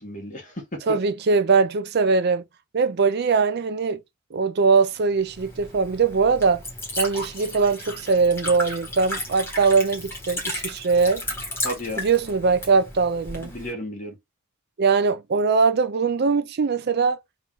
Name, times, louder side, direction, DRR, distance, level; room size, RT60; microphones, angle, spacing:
voice 1, 0.0-1.0 11.6-12.1 13.4-14.2, equal, 40° left, 1.9 m, -33 dB
voice 2, 0.9-2.4 2.7-4.0 4.3-6.6 7.0-11.2 12.0-13.5 14.8-17.2, right 4 dB, 50° right, 0.5 m, -21 dB
Liquid, 5.2-13.7, left 1 dB, 10° left, 1.6 m, -34 dB
3.8 x 2.7 x 4.7 m
head